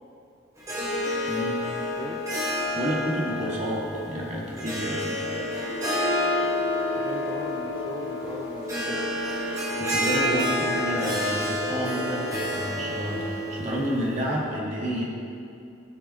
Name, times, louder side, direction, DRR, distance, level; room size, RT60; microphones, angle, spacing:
Harp, 0.6-14.3, left 1 dB, 20° right, 2.8 m, -29 dB
voice 1, 1.3-1.6 2.7-5.1 9.5-15.0, equal, 35° right, -3 dB, 2.1 m, -30 dB
voice 2, 2.0-2.4 6.9-9.1, left 2 dB, 25° left, 4 dB, 0.5 m, -39 dB
sound 1, 5.1-13.5, equal, 60° right, 2.3 m, -36 dB
17.5 x 6.2 x 4.3 m, 2.5 s
head